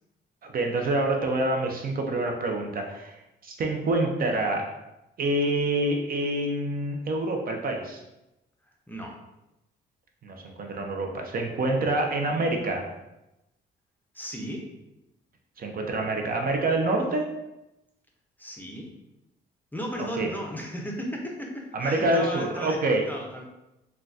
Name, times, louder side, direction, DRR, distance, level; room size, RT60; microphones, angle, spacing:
voice 1, 0.4-4.7 5.2-8.0 10.2-12.8 15.6-17.3 20.2-20.3 21.7-23.0, right 2 dB, 45° right, 2 dB, 0.5 m, -27 dB
voice 2, 14.1-14.6 18.4-18.9 19.7-22.8 23.1-23.4, equal, 10° left, 0 dB, 0.5 m, -35 dB
3.7 x 2.2 x 2.4 m, 0.94 s
cardioid pair, 90°, 20 cm